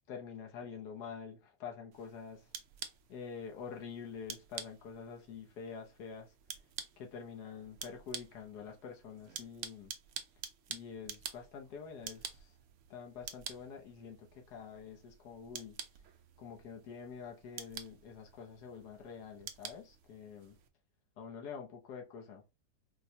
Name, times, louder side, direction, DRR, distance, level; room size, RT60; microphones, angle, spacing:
voice 1, 0.1-2.5 3.1-6.3 7.0-9.9 10.7-12.6 12.9-15.8 16.4-20.6 21.2-22.4, left 6 dB, 75° left, 1.3 m, -47 dB
sound 1, 1.9-20.7, right 8 dB, 70° right, 0.7 m, -49 dB
4.5 x 2.1 x 2.7 m
omnidirectional pair, 1.8 m